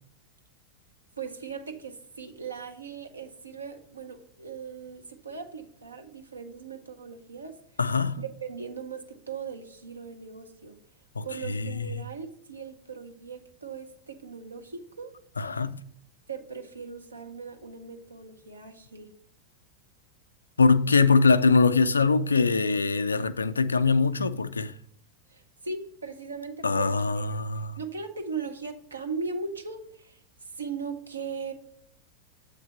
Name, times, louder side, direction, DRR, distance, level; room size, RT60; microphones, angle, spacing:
voice 1, 1.2-7.6 8.2-10.7 11.2-15.1 16.3-19.1 25.3-27.4 27.8-31.5, right 5 dB, 75° right, 0.9 m, -39 dB
voice 2, 7.8-8.2 11.2-12.0 15.4-15.7 20.6-24.7 26.6-27.8, left 4 dB, 75° left, 0.3 m, -23 dB
7.7 x 3.3 x 6.0 m
figure-of-eight pair, 90°, 0 cm